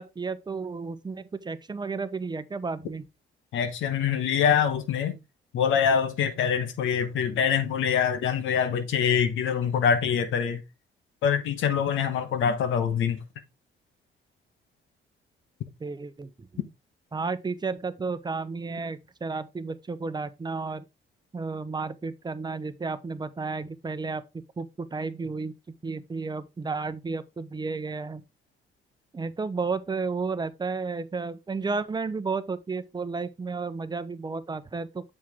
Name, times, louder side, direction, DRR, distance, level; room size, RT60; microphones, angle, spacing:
voice 1, 0.0-3.0 15.8-16.5 17.1-20.8 21.3-24.2 24.6-25.5 25.8-28.2 29.1-35.0, right 4 dB, 20° right, 0.7 m, -32 dB
voice 2, 3.5-5.2 5.5-10.6 11.2-13.2, left 7 dB, 80° left, 1.1 m, -24 dB
7.4 x 4.8 x 3.5 m
cardioid pair, 90°, 20 cm